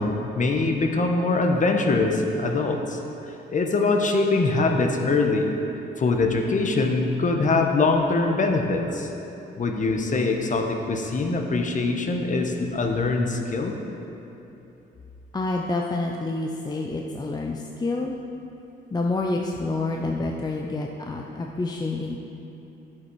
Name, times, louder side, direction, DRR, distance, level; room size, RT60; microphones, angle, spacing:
voice 1, 0.0-3.0 3.5-5.5 6.0-9.1 9.6-13.7, left 3 dB, 40° left, 3 dB, 1.1 m, -23 dB
voice 2, 15.3-18.2 18.9-22.2, left 2 dB, 20° left, 1 dB, 0.6 m, -28 dB
10.5 x 7.5 x 4.7 m, 2.9 s
cardioid pair, 90°, 20 cm